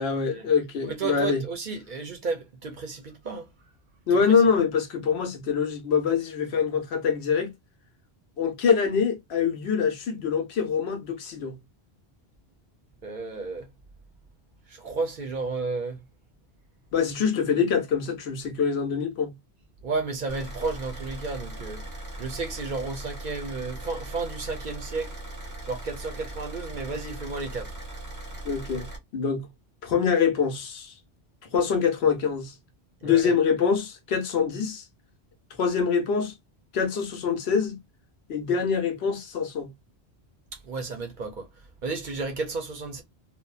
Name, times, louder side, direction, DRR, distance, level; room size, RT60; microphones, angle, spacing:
voice 1, 0.0-1.4 4.1-7.5 8.4-11.5 16.9-19.3 28.4-28.9 29.1-29.5 29.8-30.9 31.5-32.5 33.0-34.8 35.6-36.3 36.7-37.8 38.3-39.7, left 6 dB, 75° left, 1.0 m, -24 dB
voice 2, 0.8-3.5 4.1-4.4 13.0-13.7 14.7-16.0 19.8-21.9 22.2-25.2 25.6-27.8 33.0-33.3 40.5-43.0, right 4 dB, 55° right, 0.7 m, -33 dB
Car / Idling, 20.3-29.0, right 1 dB, 20° right, 0.7 m, -39 dB
2.7 x 2.1 x 2.3 m
omnidirectional pair, 1.1 m